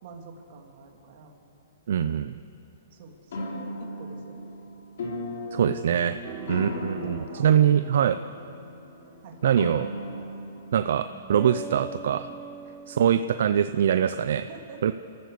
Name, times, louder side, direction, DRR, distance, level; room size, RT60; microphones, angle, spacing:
voice 1, 0.0-1.4 2.9-4.5 6.3-6.7 7.0-7.5 9.2-9.4 12.6-13.3 14.5-14.9, right 4 dB, 45° right, 2 dB, 3.0 m, -46 dB
voice 2, 1.9-2.3 5.5-6.2 6.5-8.2 9.4-9.9 10.7-12.3 12.9-14.5 14.8-14.9, right 9 dB, 65° right, 11 dB, 0.6 m, -23 dB
sound 1, 3.3-10.8, left 2 dB, 65° left, 3.9 m, -37 dB
sound 2, 6.2-9.4 11.1-13.3, right 5 dB, 20° right, 0.7 m, -43 dB
29.5 x 14.0 x 6.8 m, 2.8 s
hypercardioid pair, 160°, 0 cm